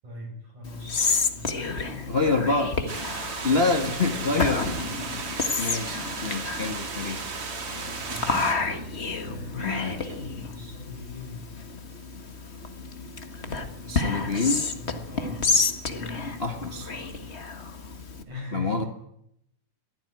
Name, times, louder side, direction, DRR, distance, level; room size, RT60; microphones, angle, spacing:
voice 1, 0.0-2.5 3.5-4.4 4.8-5.2 8.1-8.5 9.2-11.4 13.6-14.4 14.7-15.4 15.9-17.1 18.3-18.9, left 2 dB, 65° right, 0 dB, 9.3 m, -40 dB
Whispering, 0.6-18.2, left 4 dB, 35° left, 1.0 m, -30 dB
voice 2, 2.1-2.7 3.4-4.7 5.6-7.2 9.6-9.9 13.9-14.6 16.4-16.9 18.5-18.8, left 3 dB, 80° left, 4 dB, 0.5 m, -26 dB
sound 1, 2.9-8.5, right 4 dB, 45° right, 3.3 m, -35 dB
22.5 x 15.0 x 9.2 m, 0.78 s
omnidirectional pair, 3.7 m